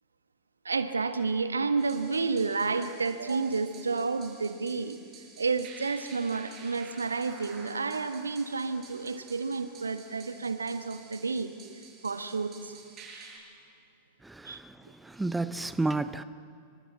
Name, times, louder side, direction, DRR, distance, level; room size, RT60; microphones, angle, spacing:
voice 1, 0.6-5.0 5.4-11.5 12.0-12.8 14.4-14.6, right 4 dB, 75° right, 1.4 m, -30 dB
sound 1, 1.8-13.4, right 5 dB, 30° right, 6.9 m, -51 dB
voice 2, 14.2-16.2, right 2 dB, 5° right, 0.7 m, -32 dB
28.5 x 25.5 x 7.1 m
figure-of-eight pair, 90°, 0 cm